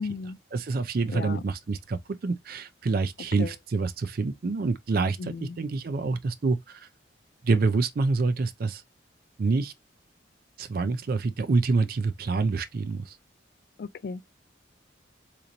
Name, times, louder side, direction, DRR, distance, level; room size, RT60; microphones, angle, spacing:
voice 1, 0.0-0.4 1.1-1.4 3.4-3.5 5.2-5.6 13.8-14.3, left 5 dB, 55° left, 0.3 m, -35 dB
voice 2, 0.5-6.9 7.4-8.8 9.4-9.7 10.6-13.1, right 3 dB, 50° right, 0.4 m, -27 dB
4.0 x 2.9 x 2.5 m
head